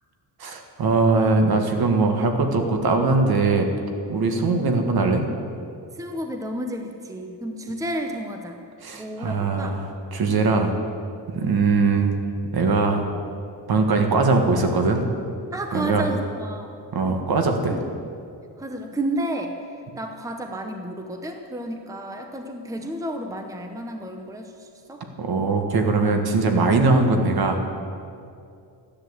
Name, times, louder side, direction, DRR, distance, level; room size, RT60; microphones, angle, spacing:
voice 1, 0.4-3.7 4.1-5.2 8.8-10.7 11.3-12.2 12.5-13.0 13.7-15.1 15.7-16.1 16.9-17.8 25.2-27.6, right 3 dB, 60° right, 4 dB, 1.7 m, -21 dB
voice 2, 6.0-8.6 8.9-9.7 11.4-11.6 15.5-16.8 17.7-17.8 18.6-19.5 20.0-25.0, right 1 dB, 10° right, 5 dB, 0.9 m, -31 dB
14.0 x 10.5 x 7.9 m, 2.5 s
wide cardioid pair, 150°, 42 cm